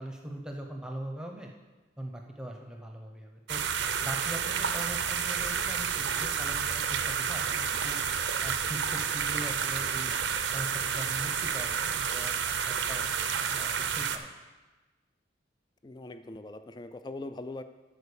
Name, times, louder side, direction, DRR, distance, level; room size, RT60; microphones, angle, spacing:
voice 1, 0.0-1.5 2.0-3.6 4.0-8.0 8.4-10.2 10.5-14.3, right 1 dB, 5° right, 2 dB, 0.8 m, -41 dB
sound 1, 3.5-14.2, right 7 dB, 70° right, 0.6 m, -30 dB
voice 2, 15.8-17.6, left 2 dB, 20° left, 10 dB, 0.3 m, -41 dB
11.0 x 4.5 x 6.9 m, 1.2 s
head